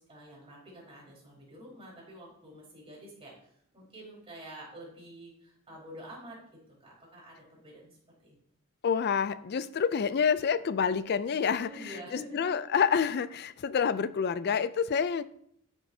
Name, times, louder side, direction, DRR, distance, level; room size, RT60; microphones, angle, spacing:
voice 1, 0.0-8.4 11.6-12.5, equal, 25° right, -5 dB, 4.4 m, -48 dB
voice 2, 8.8-11.7 12.3-15.2, left 6 dB, 45° left, 15 dB, 0.4 m, -28 dB
14.0 x 7.3 x 2.7 m, 0.70 s
head